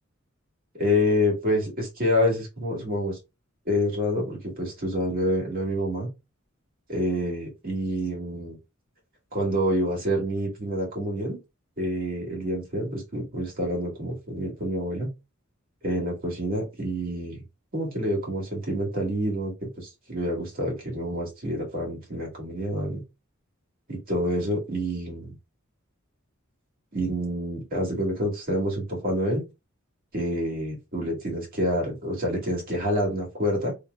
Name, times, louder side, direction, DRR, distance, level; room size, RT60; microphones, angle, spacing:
voice 1, 0.7-3.2 3.6-6.1 6.9-8.6 9.3-11.4 11.8-15.1 15.8-17.4 17.7-23.0 23.9-25.3 26.9-29.4 30.1-33.7, equal, 45° right, 1.7 m, -27 dB
3.1 x 2.2 x 3.4 m
head